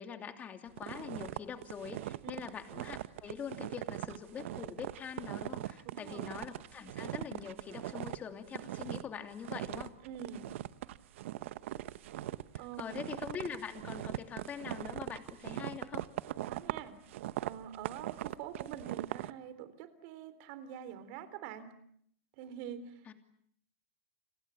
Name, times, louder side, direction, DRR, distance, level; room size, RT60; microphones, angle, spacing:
voice 1, 0.0-9.9 12.8-16.1 23.1-23.2, left 7 dB, 25° left, 6 dB, 2.9 m, -44 dB
sound 1, 0.8-8.2 8.5-9.1 9.4-19.3, right 14 dB, 75° right, 1.0 m, -40 dB
voice 2, 5.9-6.3 10.0-10.5 12.6-13.0 16.4-17.0 17.4-21.7 22.4-23.1, right 9 dB, 50° right, 13 dB, 3.7 m, -46 dB
29.0 x 26.5 x 7.1 m, 0.66 s
supercardioid pair, 150°, 7 cm